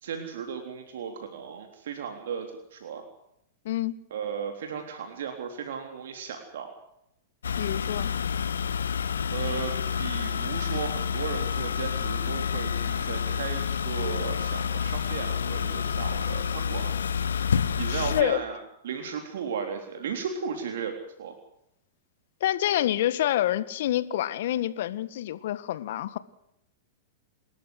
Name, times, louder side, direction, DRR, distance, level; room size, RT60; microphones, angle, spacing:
voice 1, 0.0-3.0 4.1-6.7 9.3-16.9 17.8-18.6 18.8-21.3, right 7 dB, 65° right, 5 dB, 3.6 m, -35 dB
sound 1, 7.4-18.2, left 7 dB, 80° left, 1.6 m, -29 dB
voice 2, 7.6-8.1 17.9-18.4 22.4-26.2, left 12 dB, 60° left, 15 dB, 1.7 m, -27 dB
29.5 x 14.0 x 8.1 m, 0.79 s
hypercardioid pair, 105°, 0 cm